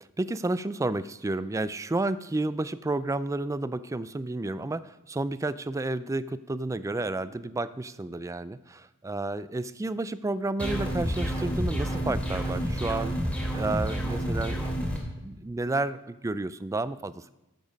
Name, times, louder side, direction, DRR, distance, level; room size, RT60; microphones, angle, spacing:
voice 1, 0.2-13.2 13.5-14.7 15.2-17.3, right 2 dB, 15° right, 14 dB, 0.3 m, -31 dB
sound 1, 10.6-15.0, equal, 5° left, 2.6 m, -29 dB
13.5 x 6.9 x 5.3 m, 1.0 s
head